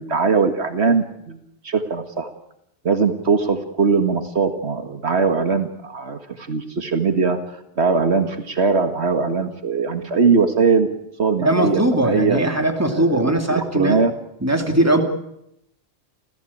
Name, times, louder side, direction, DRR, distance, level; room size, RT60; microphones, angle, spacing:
voice 1, 0.0-2.3 2.8-10.9 11.2-12.4 12.9-14.1, right 4 dB, 80° right, 7 dB, 2.0 m, -21 dB
voice 2, 11.4-14.0 14.4-15.0, right 1 dB, 15° right, 4 dB, 2.8 m, -19 dB
30.0 x 15.0 x 8.6 m, 0.81 s
omnidirectional pair, 1.1 m